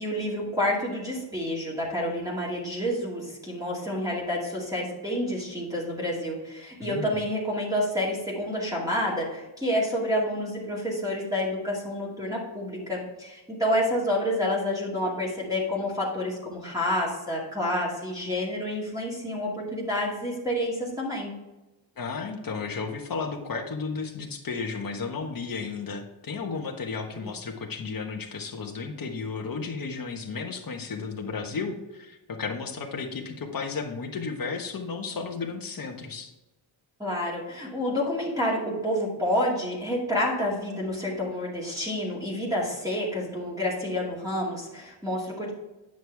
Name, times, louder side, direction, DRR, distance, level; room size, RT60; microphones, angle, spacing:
voice 1, 0.0-21.3 27.1-27.3 37.0-45.5, left 1 dB, 5° right, -5 dB, 2.2 m, -29 dB
voice 2, 6.8-7.2 22.0-36.3, left 4 dB, 45° left, 3 dB, 1.3 m, -33 dB
9.2 x 6.4 x 3.5 m, 1.0 s
wide cardioid pair, 120°, 47 cm